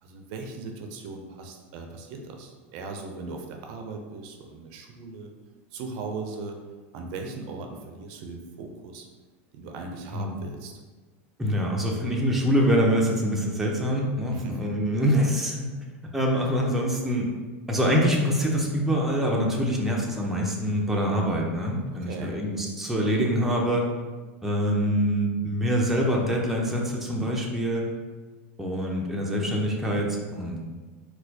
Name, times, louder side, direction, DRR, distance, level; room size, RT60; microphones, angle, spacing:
voice 1, 0.0-5.3 5.7-6.6 6.9-9.1 9.5-10.7 14.3-14.7 22.0-22.4, right 3 dB, 60° right, 3 dB, 0.5 m, -38 dB
voice 2, 11.4-15.7 16.1-17.3 17.7-23.9 24.4-27.8 28.6-30.6, equal, 5° right, -2 dB, 0.5 m, -25 dB
4.1 x 2.2 x 2.7 m, 1.3 s
supercardioid pair, 130°, 7 cm